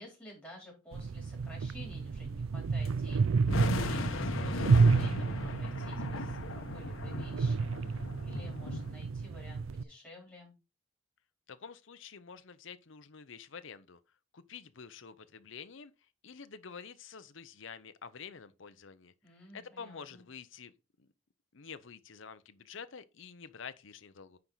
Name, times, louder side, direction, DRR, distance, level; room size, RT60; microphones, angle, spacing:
voice 1, 0.0-10.5 19.2-20.2, left 1 dB, 10° left, 3.8 m, -53 dB
sound 1, 0.9-9.8, right 4 dB, 75° right, 0.4 m, -30 dB
sound 2, 2.8-2.9 3.5-8.9, left 2 dB, 85° left, 1.1 m, -37 dB
voice 2, 11.5-14.0 14.3-15.9 16.2-20.7 21.0-21.1 21.5-24.4, left 6 dB, 65° left, 0.7 m, -48 dB
9.7 x 4.6 x 3.9 m
head